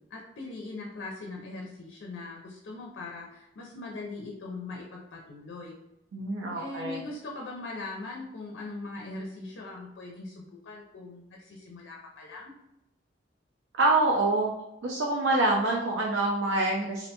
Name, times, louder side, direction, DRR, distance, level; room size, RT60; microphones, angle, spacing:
voice 1, 0.1-5.8 6.5-12.5, left 3 dB, 90° left, -1 dB, 0.5 m, -40 dB
voice 2, 6.1-7.0 13.8-14.5 14.8-17.1, right 2 dB, 85° right, -1 dB, 0.4 m, -26 dB
2.5 x 2.1 x 2.7 m, 0.86 s
head